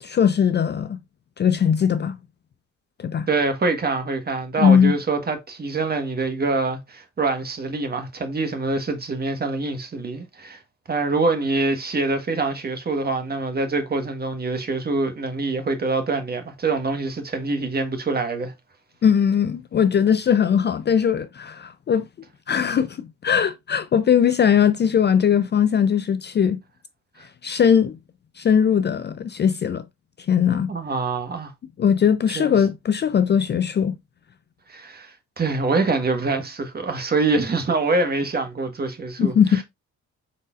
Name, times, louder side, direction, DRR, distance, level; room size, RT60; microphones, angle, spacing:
voice 1, 0.0-1.0 1.4-2.2 3.0-3.3 4.6-5.0 19.0-22.0 22.5-26.6 27.4-28.0 28.4-29.8 30.3-30.7 31.8-34.0 39.2-39.6, left 8 dB, 35° left, 0.4 m, -19 dB
voice 2, 3.3-10.6 10.9-18.5 30.7-31.5 32.3-32.5 34.7-39.6, right 3 dB, 30° right, 1.4 m, -25 dB
5.1 x 4.1 x 2.4 m
cardioid pair, 90°, 30 cm